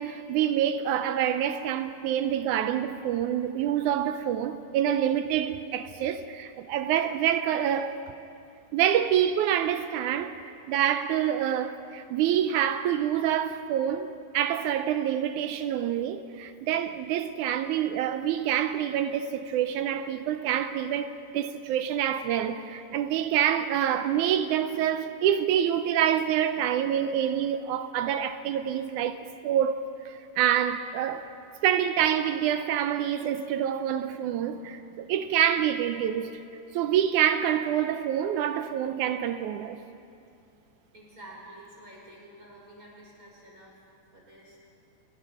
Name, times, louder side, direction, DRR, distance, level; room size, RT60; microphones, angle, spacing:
voice 1, 0.0-8.0 8.7-10.4 10.7-31.3 31.6-36.4 36.7-39.8, right 10 dB, 80° right, 2.0 m, -27 dB
voice 2, 40.9-43.7 44.1-44.6, right 1 dB, 25° right, 5.7 m, -49 dB
28.0 x 20.5 x 5.0 m
omnidirectional pair, 3.7 m